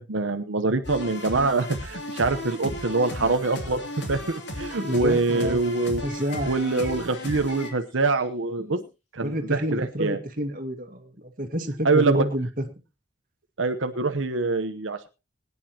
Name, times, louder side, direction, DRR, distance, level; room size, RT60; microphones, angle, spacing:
voice 1, 0.0-6.0 6.5-8.8 9.1-10.2 11.8-12.3 13.6-15.1, right 3 dB, 90° right, 7 dB, 1.0 m, -25 dB
sound 1, 0.8-7.7, left 1 dB, 65° left, 3.1 m, -35 dB
voice 2, 4.8-5.6 6.0-6.5 8.6-8.8 9.2-12.5, equal, 45° right, 6 dB, 1.9 m, -29 dB
sound 2, 6.0-8.3 9.7-9.9, left 2 dB, 35° left, 3.2 m, -47 dB
21.5 x 9.9 x 2.9 m, 0.28 s
head